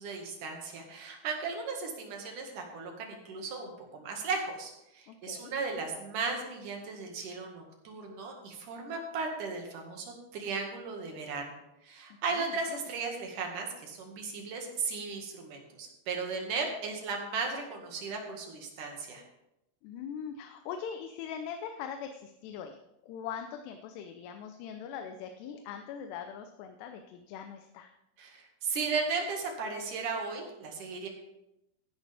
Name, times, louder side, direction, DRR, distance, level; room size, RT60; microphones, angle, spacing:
voice 1, 0.0-19.2 28.2-31.1, right 4 dB, 55° right, 2 dB, 3.1 m, -36 dB
voice 2, 5.1-5.5 12.3-12.8 19.8-22.8 23.0-27.9, left 7 dB, 85° left, 6 dB, 2.9 m, -41 dB
15.0 x 11.5 x 3.5 m, 0.88 s
omnidirectional pair, 4.8 m